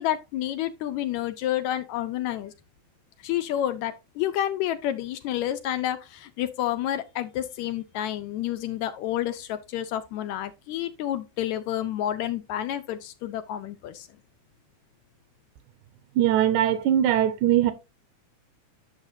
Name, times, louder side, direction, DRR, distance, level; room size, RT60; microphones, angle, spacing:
voice 1, 0.0-2.5 3.2-14.1, left 12 dB, 80° left, 1.8 m, -29 dB
voice 2, 16.2-17.7, right 11 dB, 85° right, 2.0 m, -21 dB
9.7 x 6.3 x 2.6 m
omnidirectional pair, 3.5 m